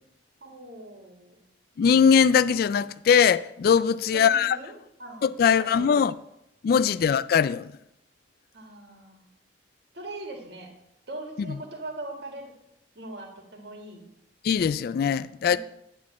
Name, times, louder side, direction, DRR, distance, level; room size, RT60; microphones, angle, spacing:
voice 1, 0.4-1.4 4.1-6.0 7.0-7.1 8.5-9.3 9.9-10.7 11.1-12.5 12.9-14.0 15.4-15.6, right 2 dB, 65° right, 2.0 m, -41 dB
voice 2, 1.8-4.6 5.2-6.2 6.6-7.7 11.5-11.6 14.4-15.6, left 7 dB, 60° left, 0.3 m, -21 dB
9.6 x 3.8 x 7.2 m
head